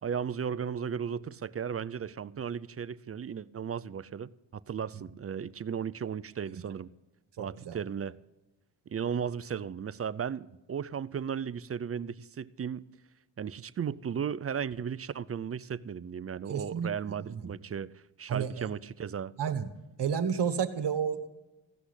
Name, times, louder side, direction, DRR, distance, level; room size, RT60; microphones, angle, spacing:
voice 1, 0.0-6.9 7.4-8.1 8.9-12.8 13.4-19.3, right 7 dB, 30° right, 0.5 m, -35 dB
voice 2, 7.4-7.8 16.5-16.9 17.2-17.5 18.3-18.7 19.4-19.7 20.0-21.3, right 7 dB, 55° right, 1.5 m, -31 dB
16.0 x 6.0 x 10.0 m
cardioid pair, 80°, 49 cm